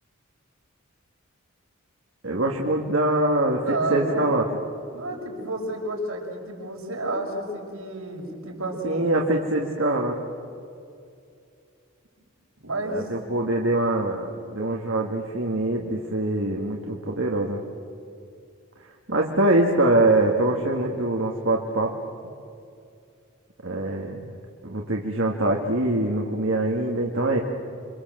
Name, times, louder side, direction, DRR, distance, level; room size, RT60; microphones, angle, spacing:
voice 1, 2.2-4.5 8.8-10.2 12.9-17.6 19.1-21.9 23.6-24.3 24.6-27.4, right 2 dB, 65° right, 0 dB, 1.9 m, -24 dB
voice 2, 3.6-4.3 4.9-9.1 12.6-13.1, right 1 dB, 80° right, -1 dB, 5.8 m, -30 dB
28.0 x 24.5 x 7.8 m, 2.5 s
head